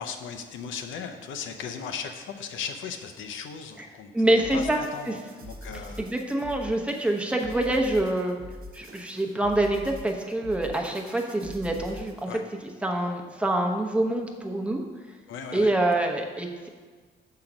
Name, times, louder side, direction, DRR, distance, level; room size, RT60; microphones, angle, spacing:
voice 1, 0.0-6.1 12.3-12.4 15.3-15.7, left 6 dB, 80° left, 5 dB, 0.7 m, -37 dB
voice 2, 4.1-4.8 5.1-5.2 6.0-8.4 8.7-12.3 12.8-14.8 15.5-16.7, right 1 dB, 5° right, 1 dB, 0.8 m, -26 dB
sound 1, 4.4-12.3, equal, 45° right, 1.0 m, -44 dB
5.7 x 3.8 x 5.9 m, 1.5 s
cardioid pair, 90°, 20 cm